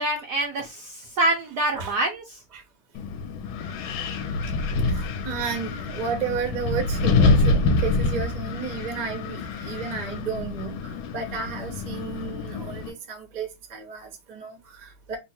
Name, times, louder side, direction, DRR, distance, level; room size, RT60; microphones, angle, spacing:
voice 1, 0.0-2.2, right 1 dB, 70° right, 1.0 m, -25 dB
Wind, 3.0-12.9, left 3 dB, 75° left, 1.4 m, -26 dB
voice 2, 4.8-15.2, right 5 dB, 40° right, 0.6 m, -33 dB
3.6 x 2.1 x 4.2 m
omnidirectional pair, 2.4 m